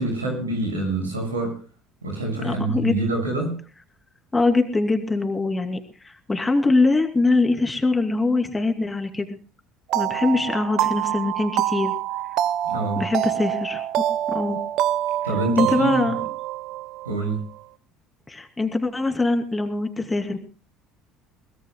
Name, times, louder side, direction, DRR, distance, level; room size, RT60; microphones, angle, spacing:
voice 1, 0.0-1.6 2.0-3.6 12.6-13.0 15.2-16.1 17.0-17.5, right 2 dB, 90° right, 1 dB, 6.9 m, -26 dB
voice 2, 2.4-2.9 4.3-9.4 9.9-11.9 13.0-13.8 14.3-14.6 15.6-16.2 18.3-20.4, left 3 dB, 15° left, 5 dB, 2.7 m, -23 dB
sound 1, 9.9-17.4, right 13 dB, 60° right, 0.8 m, -26 dB
23.0 x 21.0 x 2.2 m, 0.38 s
hypercardioid pair, 65°, 0 cm